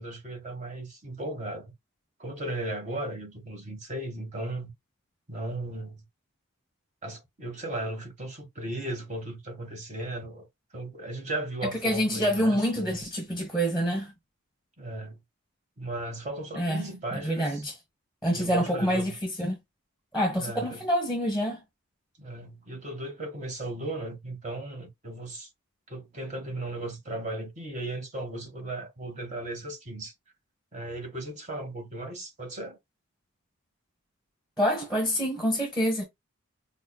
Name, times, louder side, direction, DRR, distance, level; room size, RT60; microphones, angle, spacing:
voice 1, 0.0-1.7 2.2-4.7 5.3-6.0 7.0-10.5 10.7-13.1 14.8-15.2 15.8-17.6 18.3-19.1 20.4-20.8 22.2-25.5 25.9-30.1 30.7-32.8, right 1 dB, 35° right, 1.0 m, -36 dB
voice 2, 11.8-14.1 16.5-16.8 17.1-17.8 18.2-19.5 20.1-21.6 34.6-36.1, equal, ahead, 1.0 m, -27 dB
5.4 x 2.1 x 2.2 m
head